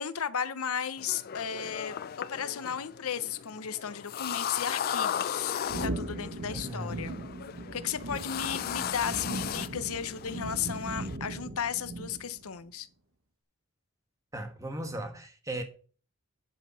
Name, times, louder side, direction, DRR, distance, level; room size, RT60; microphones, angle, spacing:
voice 1, 0.0-2.0 2.3-5.6 5.8-7.1 7.7-12.9, left 8 dB, 80° left, 0.7 m, -34 dB
sound 1, 1.0-11.2, left 9 dB, 45° left, 0.3 m, -37 dB
sound 2, 5.7-12.5, right 1 dB, 60° right, 1.3 m, -38 dB
voice 2, 6.5-7.1 14.3-15.6, right 1 dB, 15° right, 1.3 m, -37 dB
9.8 x 5.5 x 5.6 m
head